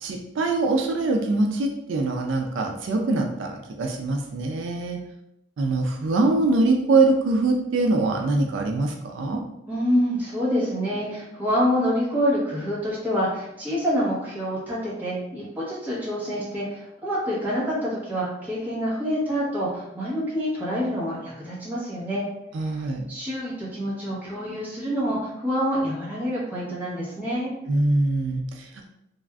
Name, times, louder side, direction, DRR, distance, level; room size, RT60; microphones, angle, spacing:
voice 1, 0.0-3.5 3.8-5.0 5.6-9.4 22.5-23.1 27.7-28.9, right 2 dB, 80° right, 2 dB, 0.4 m, -23 dB
voice 2, 9.7-22.2 22.6-27.5, equal, 10° right, -9 dB, 1.0 m, -27 dB
3.4 x 2.4 x 2.3 m, 0.84 s
head